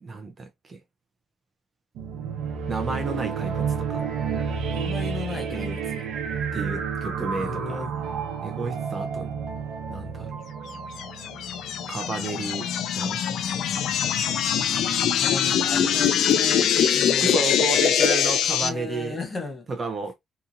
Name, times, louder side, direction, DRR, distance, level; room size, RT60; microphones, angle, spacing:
voice 1, 0.0-0.8 2.7-4.0 5.5-5.7 6.5-7.8 8.4-9.3 9.9-10.4 11.9-12.7 12.9-13.2 13.8-14.3 17.2-19.2 19.7-20.1, right 3 dB, 25° right, 0.5 m, -32 dB
sound 1, 1.9-12.2, right 6 dB, 85° right, 0.7 m, -30 dB
voice 2, 4.7-6.0 7.3-7.9 15.1-17.4 18.6-19.7, left 3 dB, 20° left, 0.8 m, -35 dB
sound 2, 11.0-18.7, left 8 dB, 65° left, 0.3 m, -23 dB
2.8 x 2.6 x 2.4 m
cardioid pair, 165°, 0 cm